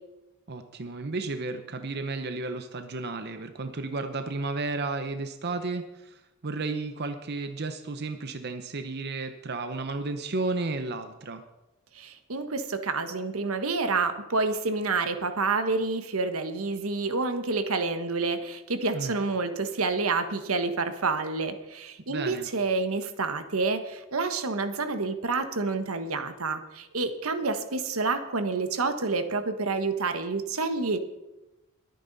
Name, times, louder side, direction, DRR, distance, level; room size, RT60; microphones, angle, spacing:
voice 1, 0.5-11.4 18.9-19.2 22.1-22.5, right 3 dB, 50° right, 8 dB, 0.8 m, -33 dB
voice 2, 11.9-31.0, right 3 dB, 85° right, 9 dB, 1.3 m, -28 dB
21.5 x 9.2 x 4.1 m, 1.0 s
head